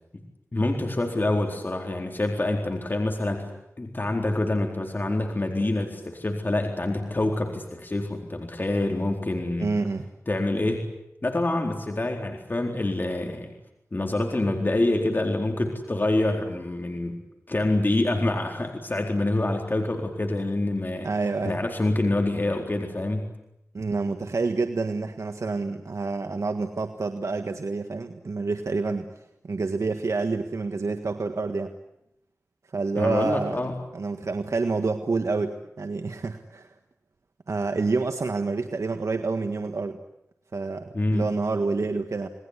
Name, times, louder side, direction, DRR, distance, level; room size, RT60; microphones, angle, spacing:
voice 1, 0.5-3.5 3.8-9.8 10.3-10.9 11.2-13.5 13.9-17.2 17.5-21.1 21.4-23.3 33.0-33.7 40.9-41.3, left 2 dB, 40° left, 2 dB, 4.1 m, -26 dB
voice 2, 9.6-10.1 21.0-21.6 23.7-29.1 29.4-31.7 32.7-33.6 33.9-36.7 37.5-40.0 40.5-42.3, right 3 dB, 70° right, 6 dB, 1.6 m, -28 dB
29.0 x 20.0 x 9.8 m, 0.85 s
wide cardioid pair, 55°, 5 cm